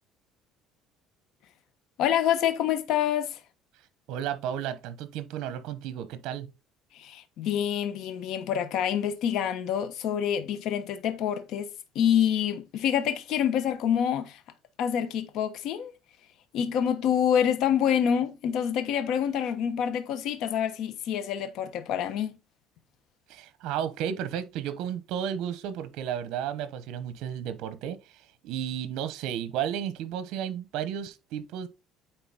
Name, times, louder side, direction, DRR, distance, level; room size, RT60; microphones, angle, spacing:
voice 1, 2.0-3.4 6.9-11.7 11.9-14.4 14.8-15.9 16.5-22.4, left 9 dB, 65° left, 1.1 m, -27 dB
voice 2, 4.1-6.5 23.3-31.7, right 9 dB, 75° right, 0.9 m, -33 dB
9.1 x 3.9 x 4.0 m
cardioid pair, 140°, 0 cm